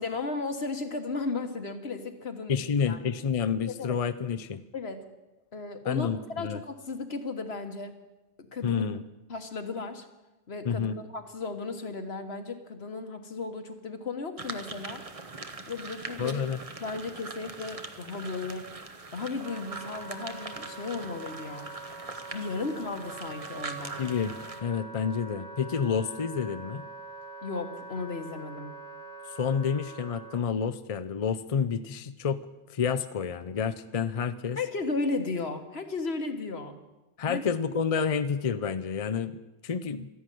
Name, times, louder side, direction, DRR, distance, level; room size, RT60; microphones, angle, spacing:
voice 1, 0.0-3.0 3.8-4.0 4.7-5.0 5.5-6.1 6.4-8.0 8.5-8.8 9.3-10.0 10.5-15.0 15.7-16.4 16.8-18.7 19.1-21.7 22.3-24.0 27.4-28.7 34.6-36.8 37.3-37.4, left 3 dB, 70° left, 7 dB, 1.7 m, -35 dB
voice 2, 2.5-4.6 5.9-6.6 8.6-9.0 10.6-11.0 16.2-16.6 24.0-26.9 29.3-32.4 32.7-34.6 37.2-40.1, left 6 dB, 40° left, 12 dB, 0.6 m, -29 dB
sound 1, 14.4-24.6, right 3 dB, 35° right, 1.0 m, -42 dB
Wind instrument woodwind instrument, 18.8-30.4, right 3 dB, 70° right, 1.7 m, -44 dB
13.5 x 11.0 x 9.2 m, 1.0 s
omnidirectional pair, 1.1 m